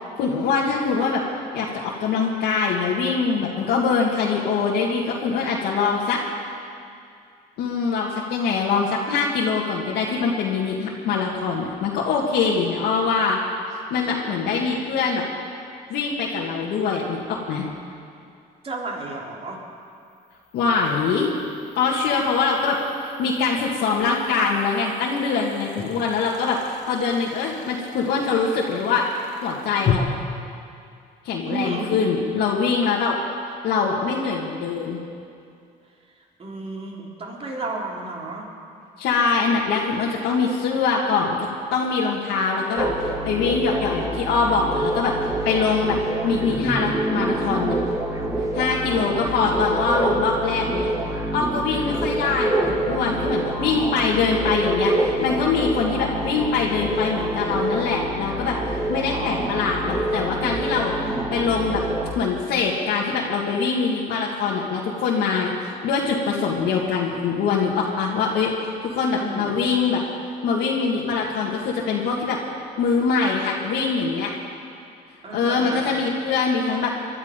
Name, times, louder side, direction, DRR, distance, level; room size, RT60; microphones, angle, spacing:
voice 1, 0.2-1.2 1.5-6.2 7.6-13.4 13.9-15.2 15.9-17.7 20.5-21.3 21.8-22.8 23.0-29.0 29.4-30.1 31.2-33.2 33.6-35.0 39.0-46.0 46.2-47.8 48.5-50.9 51.3-60.9 61.3-61.8 62.2-65.5 65.8-70.0 70.4-72.4 72.8-74.3 75.3-76.9, left 5 dB, 80° left, -4 dB, 1.8 m, -23 dB
sound 1, 16.3-16.4 19.8-29.9, left 9 dB, 45° left, 1.2 m, -36 dB
voice 2, 18.6-19.6 25.8-25.9 31.5-32.0 36.4-38.5 59.1-59.5 69.1-69.6 75.2-75.9, right 2 dB, 35° right, -2 dB, 3.3 m, -32 dB
sound 2, 42.8-62.1, right 1 dB, 15° right, 1.6 m, -26 dB
22.5 x 12.0 x 5.1 m, 2.4 s
cardioid pair, 110°, 17 cm